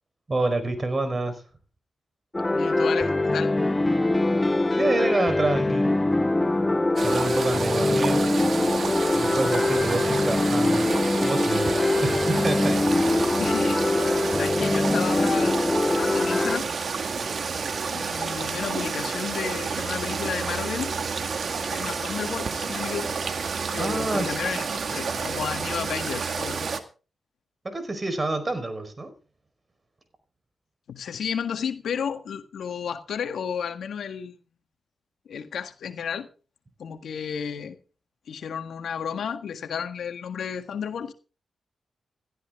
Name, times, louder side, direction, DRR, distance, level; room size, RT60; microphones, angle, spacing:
voice 1, 0.3-1.4 4.8-5.9 7.0-8.3 9.1-10.9 11.2-11.7 12.0-13.4 23.8-24.3 27.6-29.1, right 2 dB, 40° right, 4.6 m, -28 dB
sound 1, 2.3-16.6, left 2 dB, 25° left, 1.2 m, -23 dB
voice 2, 2.5-3.5 13.4-13.8 14.3-15.6 15.9-16.7 17.9-20.9 21.6-23.1 23.7-26.7 30.9-34.4 35.2-36.3 36.8-37.8 38.3-41.1, left 7 dB, 80° left, 1.6 m, -32 dB
sound 2, 7.0-26.8, right 5 dB, 65° right, 1.8 m, -30 dB
17.0 x 13.0 x 3.7 m
supercardioid pair, 45°, 0 cm